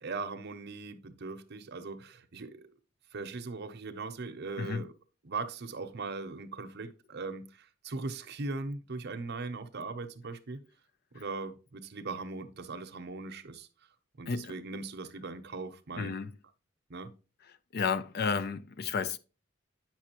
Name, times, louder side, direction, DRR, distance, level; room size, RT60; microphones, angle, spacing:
voice 1, 0.0-2.7 3.1-4.9 5.2-10.6 11.1-13.7 14.2-16.2 16.9-17.1, right 3 dB, 55° right, 0.8 m, -39 dB
voice 2, 16.0-16.3 17.7-19.2, left 5 dB, 50° left, 0.4 m, -32 dB
8.9 x 5.9 x 2.9 m
head